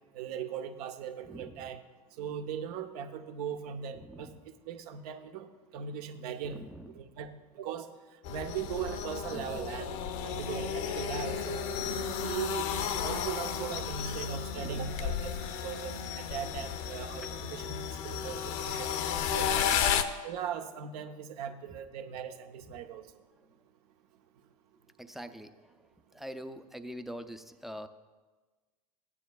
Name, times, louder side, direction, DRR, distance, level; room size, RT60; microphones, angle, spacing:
voice 1, 0.1-1.8 2.2-4.3 4.7-5.5 5.7-7.9 8.3-11.7 11.9-12.7 13.0-15.4 15.6-19.7 20.2-23.0, right 8 dB, 70° right, 7 dB, 0.8 m, -39 dB
voice 2, 6.5-6.9 9.3-9.5 11.8-12.2 14.6-14.9 19.7-19.8 25.0-25.5 26.1-27.9, equal, ahead, 9 dB, 0.4 m, -44 dB
sound 1, 8.2-20.0, left 8 dB, 60° left, 0.8 m, -33 dB
15.0 x 9.9 x 2.3 m, 1.3 s
hypercardioid pair, 105°, 21 cm